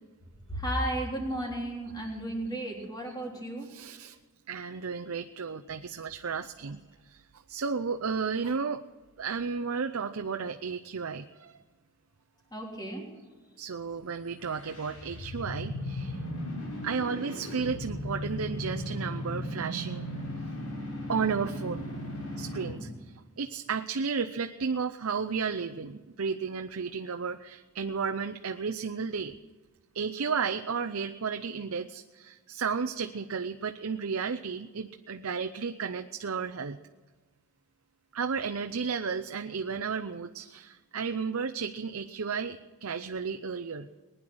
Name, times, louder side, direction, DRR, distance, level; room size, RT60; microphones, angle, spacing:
voice 1, 0.5-3.7 12.5-13.1, right 1 dB, 20° left, -1 dB, 3.7 m, -33 dB
voice 2, 3.7-4.2 4.5-8.8 9.2-11.6 13.6-16.2 16.8-20.1 21.1-21.8 22.4-29.3 29.9-36.8 38.1-43.9, right 5 dB, 65° right, 6 dB, 0.6 m, -33 dB
sound 1, 14.3-22.9, left 1 dB, 85° left, 5.7 m, -37 dB
20.0 x 10.5 x 6.3 m, 1.3 s
head